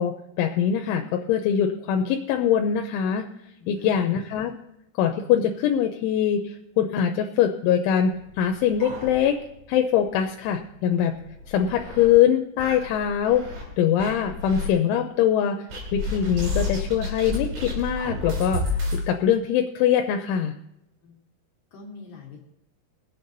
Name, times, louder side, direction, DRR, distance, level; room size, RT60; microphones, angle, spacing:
voice 1, 0.0-3.2 3.7-4.5 5.0-9.4 9.7-11.1 11.5-13.4 13.8-15.6 15.9-18.6 18.9-20.5, left 9 dB, 85° left, 4 dB, 3.2 m, -23 dB
voice 2, 3.6-4.0 21.0-21.2 21.7-22.4, left 4 dB, 55° left, -1 dB, 3.3 m, -44 dB
sound 1, 8.2-9.7 10.0-10.1 10.5-10.6 11.2-12.1 12.6-13.6 14.0-14.7 15.7-19.0, left 2 dB, 90° right, 6.0 m, -31 dB
23.0 x 8.4 x 4.0 m, 0.85 s
omnidirectional pair, 5.4 m